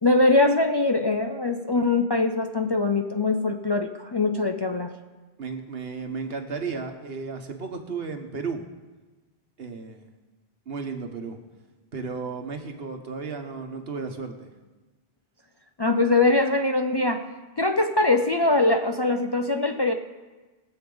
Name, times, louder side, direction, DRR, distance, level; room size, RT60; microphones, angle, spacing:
voice 1, 0.0-4.9 15.8-17.3 17.6-19.9, left 2 dB, 30° left, 5 dB, 0.5 m, -22 dB
voice 2, 5.4-8.6 9.6-10.1 10.7-11.4 11.9-14.5, right 4 dB, 70° right, 5 dB, 1.4 m, -34 dB
21.5 x 7.7 x 3.9 m, 1.2 s
omnidirectional pair, 1.1 m